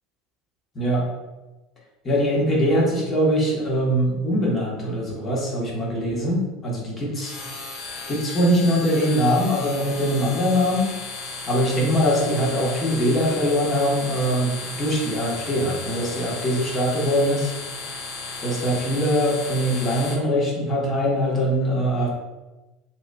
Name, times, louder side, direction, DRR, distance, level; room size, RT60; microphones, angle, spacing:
voice 1, 0.7-1.1 2.0-7.3 8.1-10.9 11.5-17.5 18.4-22.1, equal, 30° left, -3 dB, 1.3 m, -22 dB
sound 1, 7.2-20.1, left 3 dB, 55° left, 0.8 m, -35 dB
2.9 x 2.8 x 3.4 m, 1.1 s
hypercardioid pair, 75°, 0 cm